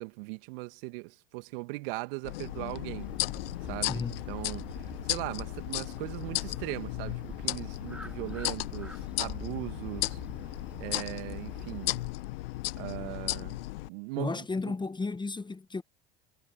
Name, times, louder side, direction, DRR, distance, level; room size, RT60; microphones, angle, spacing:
voice 1, 0.0-3.1 3.7-4.7 5.1-10.2 10.8-11.9 12.8-13.6 13.9-14.4 14.7-14.8, right 26 dB, 65° right, 2.2 m, -39 dB
sound 1, 2.2-13.9, left 18 dB, 75° left, 1.1 m, -35 dB
sound 2, 3.0-12.1, right 1 dB, 5° right, 3.5 m, -46 dB
voice 2, 3.9-4.2 14.2-15.8, left 3 dB, 15° left, 1.4 m, -33 dB
hypercardioid pair, 75°, 30 cm